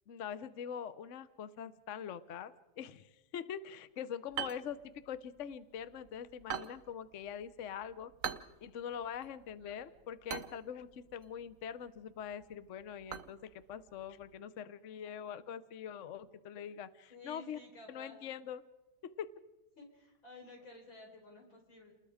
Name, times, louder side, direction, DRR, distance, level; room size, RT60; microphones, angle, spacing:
voice 1, 0.1-8.1 8.6-17.6 17.9-18.6 19.0-19.3, left 8 dB, 55° left, 14 dB, 0.9 m, -43 dB
sound 1, 4.3-14.4, right 8 dB, 50° right, 1.2 m, -47 dB
voice 2, 9.5-9.8 17.1-18.2 19.8-21.9, left 2 dB, 80° left, 1 dB, 5.8 m, -54 dB
29.0 x 20.5 x 5.0 m, 1.1 s
omnidirectional pair, 2.1 m